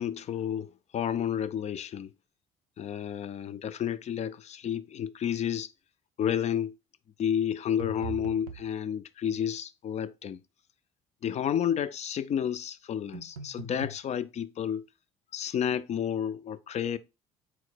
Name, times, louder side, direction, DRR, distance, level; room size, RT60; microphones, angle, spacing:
voice 1, 0.0-2.1 2.8-5.7 6.2-6.7 7.2-10.4 11.2-14.8 15.3-17.0, left 9 dB, 40° left, 0.4 m, -31 dB
sound 1, 7.8-8.7 13.1-14.0, right 4 dB, 85° right, 0.5 m, -40 dB
4.3 x 2.0 x 4.2 m
hypercardioid pair, 55°, 19 cm